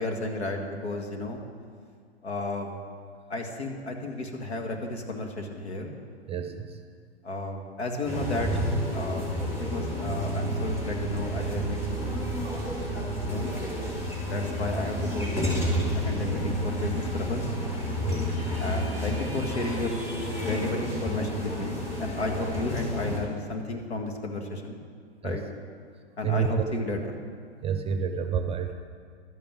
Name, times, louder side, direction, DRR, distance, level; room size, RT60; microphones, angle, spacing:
voice 1, 0.0-1.4 2.2-2.7 3.3-5.9 7.2-8.6 8.9-9.3 9.6-12.3 13.2-13.5 14.2-15.5 15.9-17.5 18.6-20.0 20.4-24.8 25.2-25.4 26.2-27.2, left 2 dB, 75° left, 3 dB, 2.1 m, -33 dB
voice 2, 6.3-6.8 18.0-18.6 25.2-25.4 26.2-27.0 27.6-28.7, right 7 dB, 20° right, 7 dB, 0.8 m, -30 dB
sound 1, 8.0-23.2, equal, 20° left, 4.1 m, -30 dB
sound 2, 17.7-20.9, left 1 dB, 40° left, 3.7 m, -42 dB
12.5 x 8.9 x 7.2 m, 2.1 s
hypercardioid pair, 110°, 33 cm